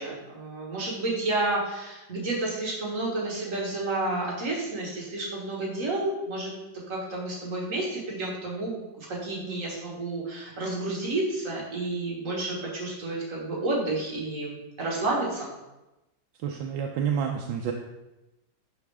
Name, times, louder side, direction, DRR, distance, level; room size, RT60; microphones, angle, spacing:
voice 1, 0.0-6.5 6.9-15.5, right 2 dB, 45° right, -3 dB, 1.9 m, -30 dB
voice 2, 16.4-17.7, right 7 dB, 75° right, 2 dB, 1.2 m, -29 dB
11.0 x 4.3 x 3.5 m, 1.0 s
omnidirectional pair, 2.1 m